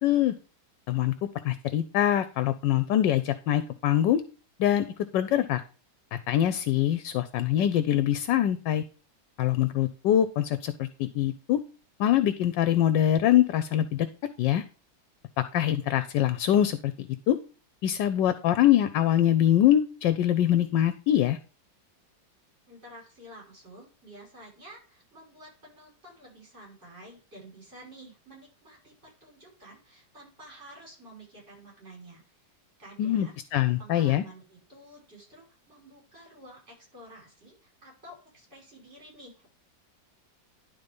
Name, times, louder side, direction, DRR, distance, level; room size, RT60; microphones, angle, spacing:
voice 1, 0.0-0.3 0.9-1.1 1.4-4.2 4.6-4.9 5.1-5.6 6.1-8.8 9.4-11.6 12.0-14.1 14.4-14.6 15.4-17.4 17.8-21.4 33.0-34.2, left 11 dB, 75° left, 12 dB, 1.3 m, -24 dB
voice 2, 22.7-32.4 32.8-39.5, right 1 dB, 35° right, -3 dB, 6.0 m, -50 dB
11.0 x 4.1 x 5.2 m, 0.36 s
omnidirectional pair, 2.0 m